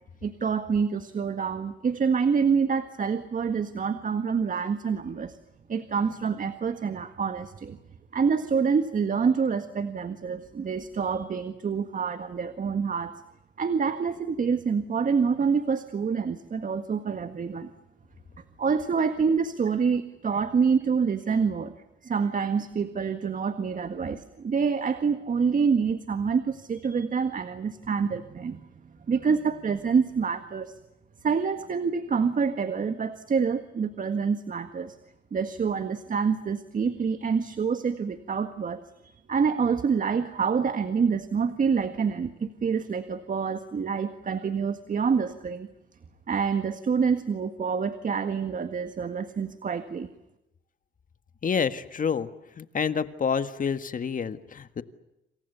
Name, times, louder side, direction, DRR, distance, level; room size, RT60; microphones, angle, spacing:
voice 1, 0.2-5.4 5.7-7.8 8.1-13.1 13.6-17.7 18.6-21.7 22.0-28.6 29.1-30.7 31.2-35.0 35.3-45.7 46.3-50.1, right 6 dB, 40° right, 9 dB, 1.8 m, -27 dB
voice 2, 51.4-52.3 52.6-54.8, left 6 dB, 40° left, 11 dB, 1.7 m, -28 dB
28.0 x 27.5 x 7.0 m, 0.89 s
cardioid pair, 90°, 20 cm